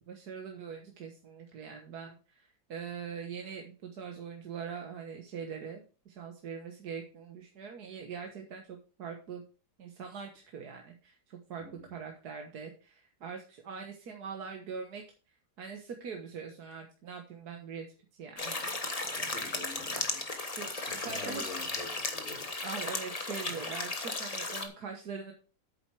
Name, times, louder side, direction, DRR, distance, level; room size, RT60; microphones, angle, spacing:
voice 1, 0.0-9.4 9.8-15.0 15.6-17.9 18.2-18.9 19.2-19.3 20.6-21.4 22.6-25.3, right 6 dB, 80° right, 3 dB, 1.8 m, -42 dB
voice 2, 11.6-11.9 19.1-20.3 20.8-22.5, left 3 dB, 55° left, -4 dB, 4.1 m, -47 dB
sound 1, 18.4-24.7, left 2 dB, 25° left, 1.3 m, -35 dB
8.9 x 7.5 x 4.8 m, 0.35 s
omnidirectional pair, 1.7 m